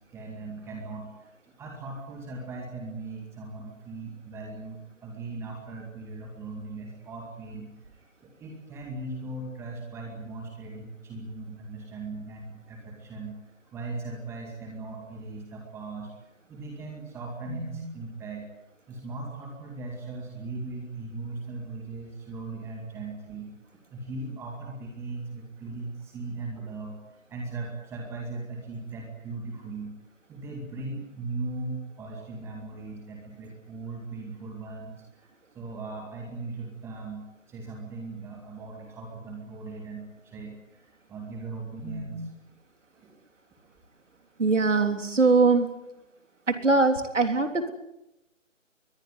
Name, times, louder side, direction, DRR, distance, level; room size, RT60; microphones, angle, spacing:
voice 1, 0.1-13.3 13.7-16.1 16.5-18.4 18.9-23.5 23.9-27.0 27.3-29.9 30.3-42.3 42.9-43.1, right 3 dB, 5° right, 1 dB, 2.3 m, -38 dB
voice 2, 44.4-45.7 46.5-47.7, right 3 dB, 65° right, 7 dB, 3.5 m, -22 dB
23.0 x 19.5 x 9.6 m, 0.91 s
figure-of-eight pair, 150°, 40 cm